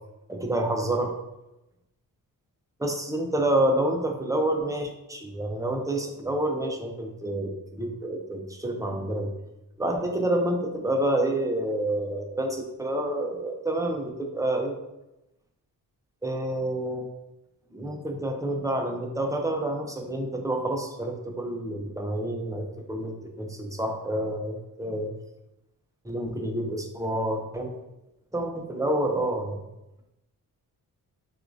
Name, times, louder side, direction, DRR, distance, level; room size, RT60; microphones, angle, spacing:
voice 1, 0.3-1.2 2.8-9.3 9.8-14.8 16.2-17.1 17.7-25.1 26.0-27.7 28.3-29.6, right 1 dB, 10° right, 3 dB, 0.4 m, -28 dB
6.2 x 2.4 x 2.5 m, 0.93 s
wide cardioid pair, 155°, 35 cm